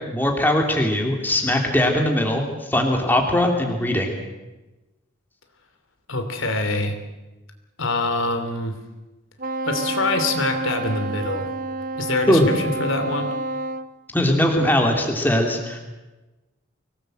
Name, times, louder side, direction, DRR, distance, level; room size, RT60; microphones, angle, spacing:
voice 1, 0.1-4.2 12.3-12.5 14.1-15.8, left 1 dB, 10° left, 2 dB, 3.0 m, -20 dB
voice 2, 6.1-7.0 7.8-8.8 9.6-11.5 12.0-13.3, left 2 dB, 75° left, 7 dB, 2.9 m, -25 dB
Wind instrument woodwind instrument, 9.4-13.9, right 2 dB, 40° right, 0.8 m, -29 dB
24.5 x 18.5 x 7.9 m, 1.1 s
head